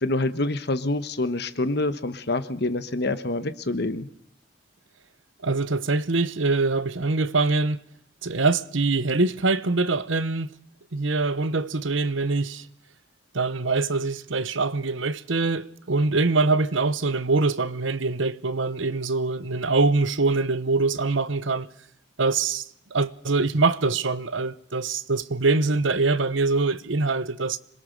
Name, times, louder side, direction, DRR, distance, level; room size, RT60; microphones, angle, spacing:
voice 1, 0.0-4.1, left 2 dB, 55° left, 1.3 m, -26 dB
voice 2, 5.4-7.8 8.2-10.5 10.9-12.7 13.3-21.7 22.2-22.6 22.9-27.6, right 3 dB, 75° right, 1.0 m, -24 dB
26.5 x 21.0 x 6.7 m
head